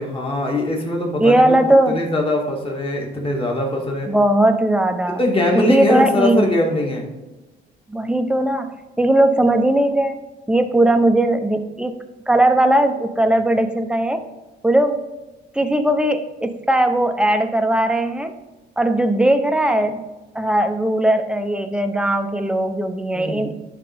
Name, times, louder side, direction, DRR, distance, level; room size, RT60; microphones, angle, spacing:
voice 1, 0.0-1.6 1.9-4.1 5.2-7.1 23.1-23.5, left 1 dB, 25° left, -1 dB, 1.9 m, -21 dB
voice 2, 1.2-2.0 4.1-5.2 5.5-6.4 7.9-10.2 10.5-11.9 12.3-14.2 14.6-15.0 15.5-18.3 18.8-20.0 20.3-23.6, right 1 dB, 5° right, 7 dB, 0.7 m, -18 dB
11.0 x 3.8 x 3.5 m, 1.1 s
cardioid pair, 90°, 20 cm